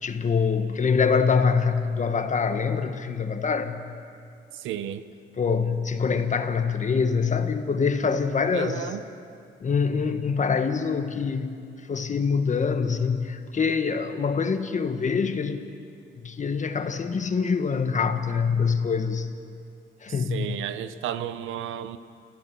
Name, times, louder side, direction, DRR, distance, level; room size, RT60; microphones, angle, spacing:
voice 1, 0.0-3.8 5.4-8.9 9.6-11.5 11.9-15.6 16.2-19.3 20.0-20.6, left 5 dB, 40° left, 8 dB, 1.5 m, -25 dB
voice 2, 4.5-5.0 8.5-9.0 20.3-22.0, right 10 dB, 85° right, 12 dB, 0.9 m, -32 dB
29.5 x 15.0 x 6.1 m, 2.4 s
cardioid pair, 90°, 20 cm